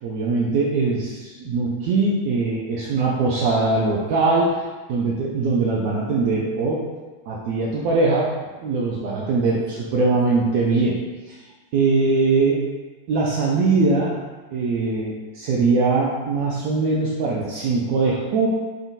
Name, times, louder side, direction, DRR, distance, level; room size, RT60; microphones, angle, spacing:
voice 1, 0.0-4.6 4.9-6.8 7.3-8.3 8.6-10.9 11.3-11.4 11.7-12.6 13.1-14.2 14.5-18.5, right 3 dB, 45° right, -4 dB, 0.5 m, -21 dB
3.8 x 3.5 x 2.4 m, 1.3 s
figure-of-eight pair, 90°, 0 cm